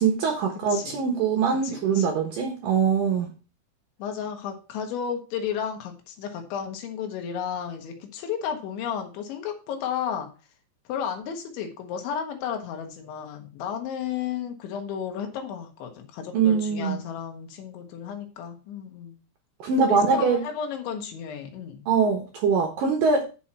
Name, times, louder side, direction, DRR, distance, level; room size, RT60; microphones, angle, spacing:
voice 1, 0.0-3.3 16.3-17.0 19.6-20.4 21.9-23.3, right 5 dB, 70° right, 3 dB, 2.2 m, -23 dB
voice 2, 1.6-2.1 4.0-10.3 10.9-19.2 19.9-21.8, left 8 dB, 80° left, 4 dB, 3.9 m, -33 dB
10.5 x 6.0 x 4.3 m, 0.34 s
omnidirectional pair, 5.4 m